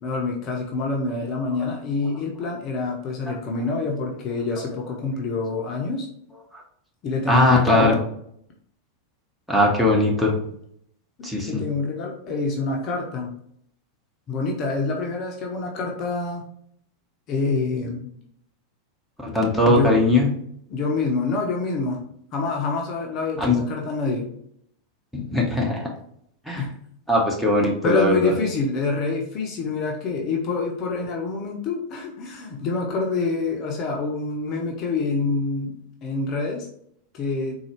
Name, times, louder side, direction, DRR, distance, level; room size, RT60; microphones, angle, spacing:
voice 1, 0.0-6.1 7.0-8.0 11.2-13.3 14.3-16.4 17.3-18.1 19.6-20.0 20.7-22.0 22.3-24.3 26.6-26.7 27.8-36.7 37.1-37.6, left 3 dB, 35° left, 0 dB, 0.7 m, -26 dB
voice 2, 7.3-8.0 9.5-10.4 11.2-11.6 19.2-20.3 23.4-23.6 25.1-25.9 26.5-26.6 27.1-28.3, left 1 dB, ahead, -2 dB, 0.8 m, -19 dB
4.0 x 2.3 x 3.0 m, 0.69 s
figure-of-eight pair, 90°, 0 cm